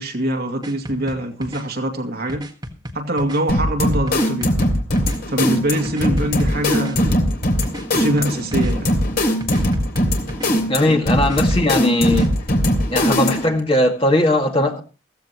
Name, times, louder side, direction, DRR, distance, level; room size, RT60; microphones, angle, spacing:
voice 1, 0.0-2.4 2.9-4.6 5.3-7.2 7.9-8.9 10.9-11.0, right 1 dB, 50° right, 2.4 m, -23 dB
sound 1, 0.6-1.6 2.3-3.4 4.1-5.2 5.8-7.0 7.6-8.7 9.4-10.5 11.2-12.3, equal, 20° right, 1.7 m, -33 dB
sound 2, 3.5-13.6, left 1 dB, 50° left, 3.1 m, -20 dB
voice 2, 10.7-12.3 12.9-14.8, left 1 dB, 30° left, 2.1 m, -18 dB
15.5 x 15.0 x 3.0 m
head